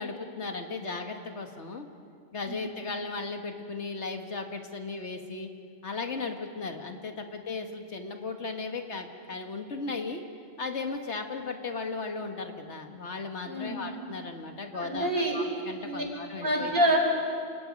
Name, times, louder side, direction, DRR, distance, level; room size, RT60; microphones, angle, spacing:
voice 1, 0.0-1.9 2.3-5.5 5.8-10.2 10.6-16.7, left 4 dB, 80° left, 4 dB, 2.0 m, -36 dB
voice 2, 13.4-13.8 14.7-15.4 15.8-16.0 16.4-17.0, right 1 dB, 55° right, 0 dB, 4.9 m, -27 dB
28.0 x 28.0 x 5.4 m, 2.2 s
omnidirectional pair, 1.2 m